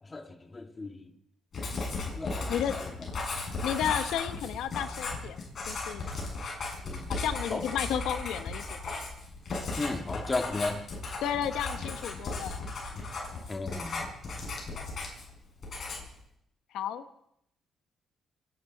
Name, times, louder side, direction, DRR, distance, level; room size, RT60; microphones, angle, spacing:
voice 1, 0.0-1.1 2.2-2.9 6.8-7.1 7.5-7.7 9.8-10.9 13.5-14.0, left 3 dB, 25° left, 5 dB, 2.1 m, -35 dB
Writing, 1.5-15.3 15.6-16.2, left 3 dB, 50° left, 7.1 m, -36 dB
voice 2, 3.6-5.4 5.7-6.1 7.1-8.8 11.2-12.7 14.7-14.9 16.7-17.0, left 9 dB, 85° left, 11 dB, 1.0 m, -32 dB
27.0 x 12.0 x 4.2 m, 0.75 s
cardioid pair, 90°, 0 cm